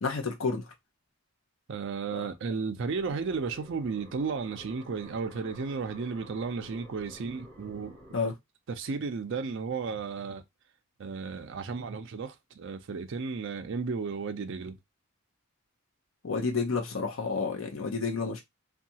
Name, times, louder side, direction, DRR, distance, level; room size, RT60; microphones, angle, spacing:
voice 1, 0.0-0.7 2.1-2.2 8.1-8.3 16.2-18.4, left 4 dB, 65° left, 0.6 m, -30 dB
voice 2, 1.7-8.0 8.7-10.4 11.0-14.8, right 5 dB, 55° right, 0.4 m, -34 dB
sound 1, 2.8-8.2, right 1 dB, 10° left, 1.5 m, -51 dB
2.7 x 2.3 x 2.7 m
head